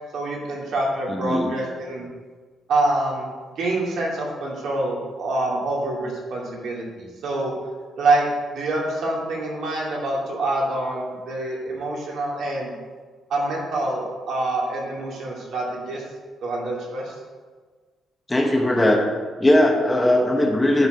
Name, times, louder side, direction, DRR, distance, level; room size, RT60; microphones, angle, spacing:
voice 1, 0.1-2.1 2.7-3.3 3.6-7.5 7.9-8.3 8.5-12.7 13.3-16.0 16.4-17.1, right 2 dB, 70° right, -3 dB, 2.8 m, -26 dB
voice 2, 1.1-1.5 18.3-19.1 19.4-20.9, left 1 dB, 15° left, 2 dB, 1.1 m, -19 dB
11.0 x 5.1 x 5.2 m, 1.5 s
cardioid pair, 120°, 0 cm